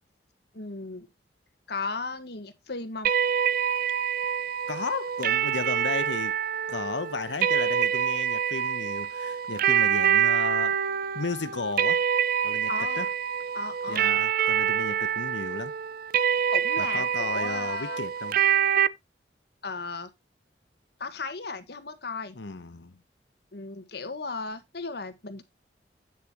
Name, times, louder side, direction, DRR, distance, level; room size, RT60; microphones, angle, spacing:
voice 1, 0.5-1.1 1.7-3.1 12.7-13.1 13.5-14.2 16.5-18.0 19.6-20.1 21.0-22.3 23.5-25.4, left 3 dB, 65° left, 1.5 m, -35 dB
sound 1, 3.0-18.9, right 8 dB, 55° right, 0.5 m, -26 dB
voice 2, 4.7-6.4 6.7-10.8 11.1-12.0 12.4-12.7 13.0-13.1 13.9-15.7 16.8-18.4 22.3-22.9, left 4 dB, 85° left, 0.9 m, -34 dB
9.3 x 8.5 x 2.9 m
head